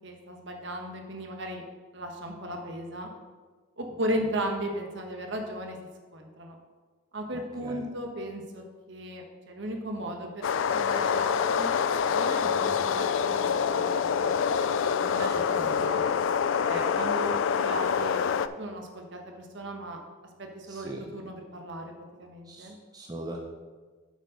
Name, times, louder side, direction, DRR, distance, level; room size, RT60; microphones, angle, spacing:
voice 1, 0.0-1.6 1.9-3.1 3.8-5.8 6.1-6.5 7.1-11.8 12.1-12.5 12.7-14.5 15.0-16.0 16.6-20.0 20.4-21.8 22.2-22.8, right 1 dB, 55° right, 3 dB, 1.2 m, -36 dB
voice 2, 7.3-7.8 12.4-12.8 15.2-16.1 20.7-21.0 22.4-23.4, right 1 dB, 20° right, 0 dB, 0.7 m, -41 dB
sound 1, 10.4-18.5, left 7 dB, 65° left, 0.3 m, -26 dB
8.2 x 5.3 x 5.1 m, 1.4 s
head